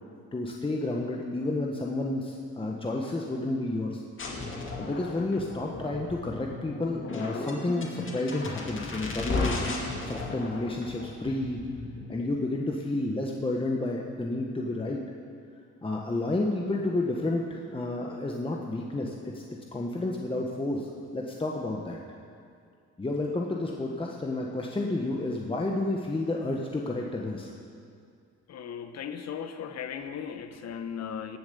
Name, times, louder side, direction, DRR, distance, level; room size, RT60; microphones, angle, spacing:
voice 1, 0.3-4.0 4.8-11.7 12.1-15.0 15.8-19.4 19.7-22.0 23.0-27.5, left 2 dB, 15° left, -1 dB, 1.1 m, -31 dB
sound 1, 4.2-12.2, left 3 dB, 40° left, 2.3 m, -35 dB
voice 2, 28.5-31.4, left 7 dB, 60° left, 8 dB, 1.0 m, -37 dB
17.0 x 7.3 x 6.9 m, 2.3 s
cardioid pair, 90°, 30 cm